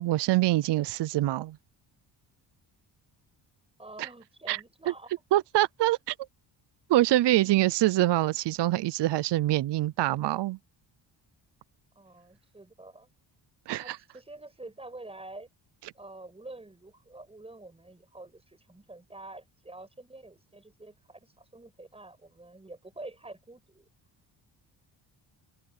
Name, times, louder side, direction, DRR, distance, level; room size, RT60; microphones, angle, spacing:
voice 1, 0.0-1.6 4.5-4.6 5.3-6.1 6.9-10.6 13.7-14.0, right 15 dB, 65° right, 0.6 m, -25 dB
voice 2, 3.8-5.1 12.0-13.1 13.8-15.5 15.9-23.9, right 2 dB, 15° right, 6.9 m, -47 dB
cardioid pair, 135°, 45 cm